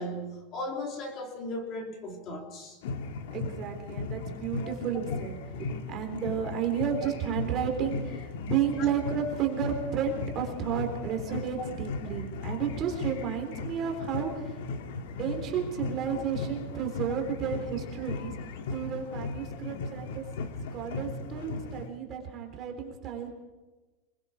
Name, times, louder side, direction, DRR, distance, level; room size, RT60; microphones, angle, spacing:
voice 1, 0.0-2.8 4.6-4.7 8.8-8.9, left 1 dB, 30° left, 3 dB, 3.2 m, -37 dB
sound 1, 2.8-21.9, left 4 dB, 70° left, 2.1 m, -37 dB
voice 2, 3.3-14.6 15.2-18.3 18.7-20.2 20.7-23.3, right 8 dB, 25° right, 3 dB, 3.6 m, -32 dB
sound 2, 13.1-19.6, left 3 dB, 50° left, 6.2 m, -54 dB
25.5 x 22.5 x 4.9 m, 1.2 s
supercardioid pair, 180°, 0 cm